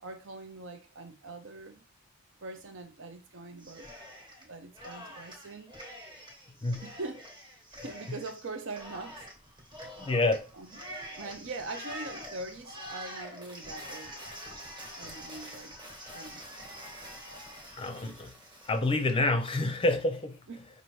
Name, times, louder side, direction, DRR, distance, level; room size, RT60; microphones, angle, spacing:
voice 1, 0.0-1.8 2.4-3.9 4.4-5.7 6.8-7.2 7.7-9.3 10.5-10.8 11.2-14.1 15.0-15.8 16.1-16.5 20.5-20.7, right 3 dB, 60° right, 0.7 m, -42 dB
Cheering, 3.6-4.5 4.8-19.2, equal, 20° right, 1.3 m, -46 dB
voice 2, 10.0-10.5 17.8-18.3 18.7-20.4, left 2 dB, 25° left, 0.6 m, -28 dB
5.5 x 2.6 x 3.1 m
head